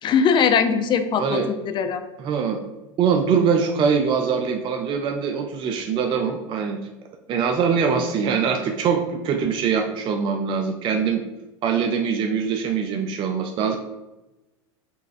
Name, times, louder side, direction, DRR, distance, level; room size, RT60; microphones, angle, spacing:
voice 1, 0.0-2.0, left 6 dB, 30° left, 8 dB, 0.4 m, -21 dB
voice 2, 1.2-1.5 2.2-2.6 3.0-6.8 7.3-11.2 11.6-13.8, right 6 dB, 35° right, 4 dB, 0.4 m, -23 dB
5.3 x 2.2 x 2.5 m, 1.0 s
hypercardioid pair, 90°, 15 cm